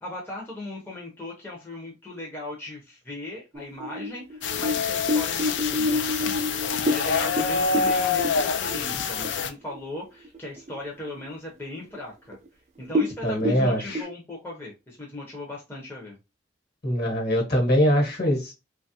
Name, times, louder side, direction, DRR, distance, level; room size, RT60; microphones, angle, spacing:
voice 1, 0.0-6.4 6.9-12.4 12.8-16.2, left 2 dB, 10° left, 0.6 m, -38 dB
sound 1, 3.5-9.4 9.7-9.8 10.2-10.8 11.2-11.3 12.0-12.1 12.3-12.5 12.8-14.0, left 1 dB, 35° right, 0.3 m, -28 dB
sound 2, 4.4-9.5, left 5 dB, 70° left, 0.4 m, -26 dB
voice 2, 13.2-14.1 16.8-18.5, equal, 55° left, 1.2 m, -23 dB
3.0 x 2.3 x 2.7 m
head